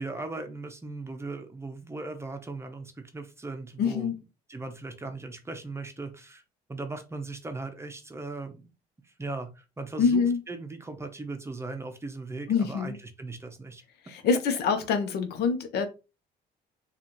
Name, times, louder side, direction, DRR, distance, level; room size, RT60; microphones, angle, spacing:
voice 1, 0.0-4.1 4.5-6.4 6.7-8.7 9.0-13.8, right 3 dB, 15° right, 0.7 m, -38 dB
voice 2, 3.8-4.1 10.0-10.4 12.5-13.0 14.0-15.9, left 5 dB, 75° left, 0.8 m, -25 dB
4.2 x 2.4 x 3.0 m
cardioid pair, 110°, 17 cm